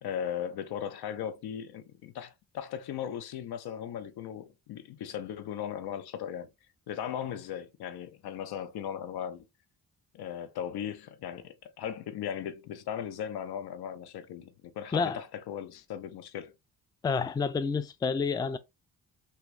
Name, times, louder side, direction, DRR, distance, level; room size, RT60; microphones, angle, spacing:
voice 1, 0.0-6.5 6.9-9.5 10.1-16.6, left 9 dB, 75° left, 0.6 m, -37 dB
voice 2, 17.0-18.6, left 5 dB, 10° left, 0.3 m, -29 dB
3.4 x 2.2 x 3.1 m
cardioid pair, 70°, 39 cm